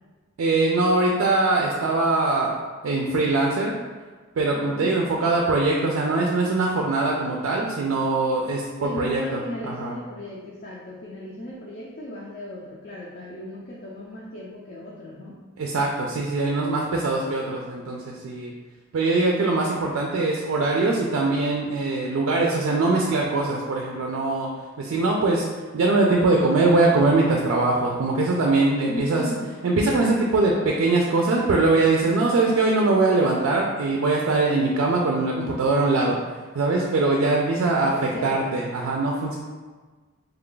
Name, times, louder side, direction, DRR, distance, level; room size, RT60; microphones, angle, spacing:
voice 1, 0.4-2.5 2.8-3.8 4.4-9.9 15.6-18.5 18.9-24.5 24.8-25.5 25.7-29.3 29.6-39.4, right 2 dB, 70° right, -1 dB, 0.4 m, -22 dB
voice 2, 4.5-5.0 8.8-15.4 28.9-29.5 37.6-38.5, left 1 dB, 45° left, -5 dB, 0.4 m, -36 dB
3.2 x 2.3 x 3.7 m, 1.4 s
head